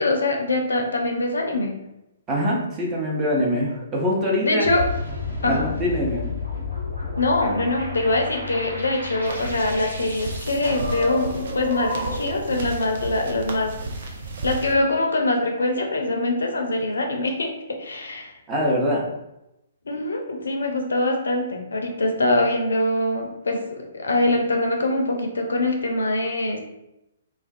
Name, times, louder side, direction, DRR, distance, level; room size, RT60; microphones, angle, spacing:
voice 1, 0.0-1.7 4.4-4.8 5.4-5.7 7.2-13.7 14.4-18.3 19.9-26.6, left 2 dB, 75° left, 2 dB, 0.4 m, -23 dB
voice 2, 2.3-4.7 5.4-6.3 18.5-19.1, equal, 20° right, -4 dB, 0.7 m, -23 dB
sound 1, 4.6-12.4, left 3 dB, 90° right, 0.7 m, -31 dB
sound 2, 9.2-14.7, right 2 dB, 55° right, 0.4 m, -34 dB
2.3 x 2.3 x 2.4 m, 0.88 s
figure-of-eight pair, 125°, 0 cm